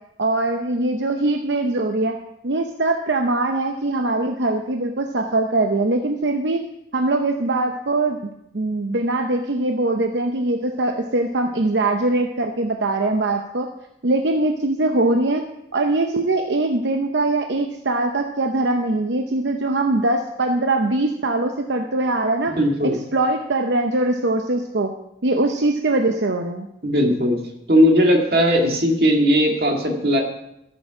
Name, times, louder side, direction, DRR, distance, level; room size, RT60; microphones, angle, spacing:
voice 1, 0.2-2.1 2.4-6.6 6.9-13.7 14.0-15.4 15.7-22.5 23.1-24.9 25.2-26.7, right 2 dB, 85° right, 4 dB, 0.8 m, -22 dB
voice 2, 22.5-23.0 26.8-27.4 27.7-30.2, equal, 55° right, 1 dB, 2.0 m, -17 dB
14.0 x 7.1 x 4.8 m, 0.81 s
head